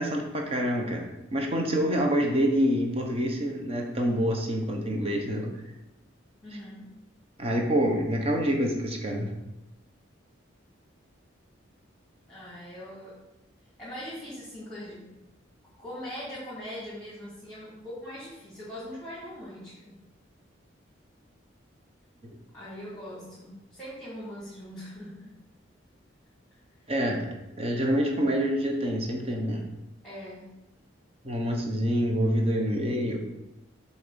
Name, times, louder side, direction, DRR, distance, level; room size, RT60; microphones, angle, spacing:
voice 1, 0.0-5.5 7.4-9.3 26.9-27.3 27.6-29.6 31.2-33.2, equal, 30° right, 1 dB, 1.2 m, -26 dB
voice 2, 6.4-6.9 12.3-13.1 13.8-15.1 15.8-20.0 22.5-25.3 30.0-30.5, equal, 5° left, -10 dB, 2.9 m, -41 dB
7.6 x 4.3 x 7.0 m, 0.95 s
head